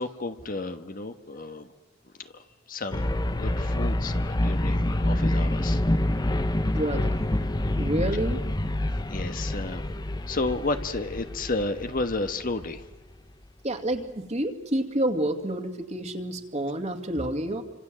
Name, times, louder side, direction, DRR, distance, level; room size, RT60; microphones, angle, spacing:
voice 1, 0.0-1.7 2.3-2.4 2.7-5.8 9.1-9.8 10.3-12.8, left 2 dB, 45° left, 8 dB, 1.3 m, -32 dB
sound 1, 2.9-12.8, left 1 dB, 20° left, 0.9 m, -27 dB
voice 2, 6.7-7.2 7.7-8.4 13.6-17.6, right 1 dB, 35° right, 5 dB, 2.3 m, -29 dB
28.0 x 26.0 x 7.6 m, 1.1 s
head